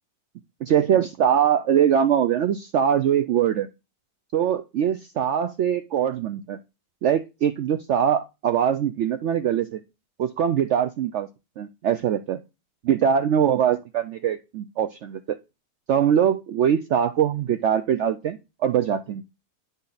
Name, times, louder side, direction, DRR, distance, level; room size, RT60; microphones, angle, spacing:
voice 1, 0.6-3.7 4.3-6.6 7.0-9.8 10.2-11.3 11.6-12.4 12.8-15.4 15.9-19.2, right 9 dB, 75° right, 9 dB, 0.6 m, -22 dB
9.5 x 4.0 x 3.9 m, 0.26 s
omnidirectional pair, 1.7 m